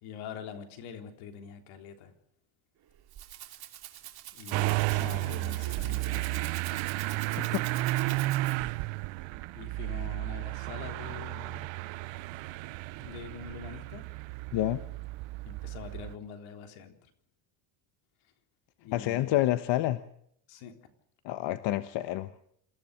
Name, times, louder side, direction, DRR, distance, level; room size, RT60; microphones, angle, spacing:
voice 1, 0.0-2.1 4.3-6.5 9.5-11.7 13.0-14.1 15.5-16.9 18.8-19.4 20.5-20.7, left 7 dB, 85° left, 6 dB, 3.8 m, -44 dB
Rattle (instrument), 2.8-8.8, right 12 dB, 50° right, 2.6 m, -46 dB
Motor vehicle (road) / Engine starting, 4.5-16.1, right 20 dB, 70° right, 0.9 m, -33 dB
voice 2, 18.9-20.0 21.2-22.3, left 15 dB, 65° left, 11 dB, 1.2 m, -28 dB
27.5 x 15.5 x 6.8 m, 0.69 s
cardioid pair, 145°, 47 cm